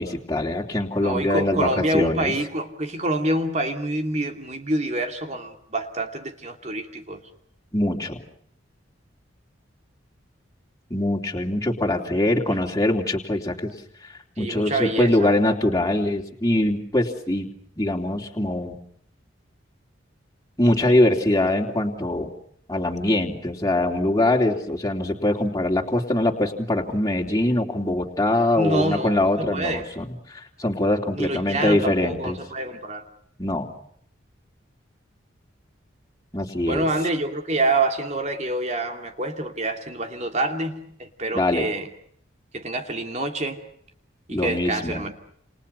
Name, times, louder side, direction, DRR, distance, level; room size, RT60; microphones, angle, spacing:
voice 1, 0.0-2.3 7.7-8.2 10.9-13.7 14.4-17.5 17.8-18.8 20.6-22.3 22.7-32.4 33.4-33.7 36.3-36.9 41.3-41.7 44.3-45.1, left 1 dB, 15° left, 3.2 m, -23 dB
voice 2, 1.0-7.2 14.4-15.4 28.6-29.9 31.1-33.0 36.6-41.9 42.5-43.6 44.3-45.1, right 2 dB, 35° right, 2.7 m, -26 dB
29.5 x 29.0 x 5.6 m
head